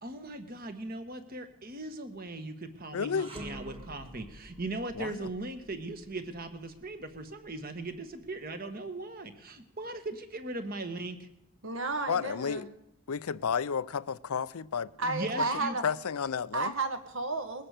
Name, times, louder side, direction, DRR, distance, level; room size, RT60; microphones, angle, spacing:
voice 1, 0.0-11.2 15.0-15.8, right 2 dB, 40° right, 1.4 m, -39 dB
voice 2, 2.9-3.3 4.9-5.3 12.1-12.7 13.1-14.9 15.8-16.7, left 6 dB, 90° left, 0.5 m, -32 dB
sound 1, 3.1-8.4, right 1 dB, 25° right, 1.8 m, -49 dB
voice 3, 11.6-12.6 15.0-15.8 16.5-17.7, right 3 dB, 65° right, 1.6 m, -32 dB
20.5 x 10.0 x 6.6 m
head